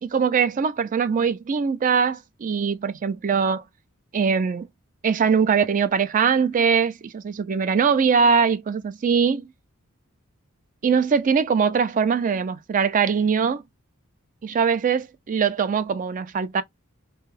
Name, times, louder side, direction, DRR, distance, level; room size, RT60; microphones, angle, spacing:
voice 1, 0.0-3.6 4.1-4.7 5.0-9.5 10.8-13.6 14.4-16.6, right 6 dB, 40° right, 0.4 m, -22 dB
2.7 x 2.2 x 3.1 m
head